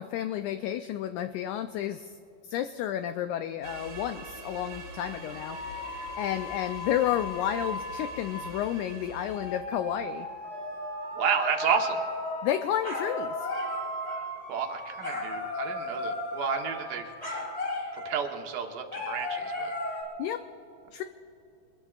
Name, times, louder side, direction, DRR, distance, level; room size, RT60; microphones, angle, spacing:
voice 1, 0.0-2.2 2.4-10.3 12.4-13.5 20.2-20.4 20.9-21.0, left 11 dB, 85° left, 9 dB, 1.7 m, -31 dB
sound 1, 3.6-9.6, right 3 dB, 35° right, 1.4 m, -44 dB
sound 2, 5.5-8.6 9.3-18.3 18.9-20.0, left 1 dB, 20° left, 3.2 m, -35 dB
voice 2, 11.2-12.0 14.5-17.4 17.9-19.7, right 6 dB, 75° right, 3 dB, 2.8 m, -31 dB
26.0 x 21.5 x 2.4 m, 2.7 s
omnidirectional pair, 4.0 m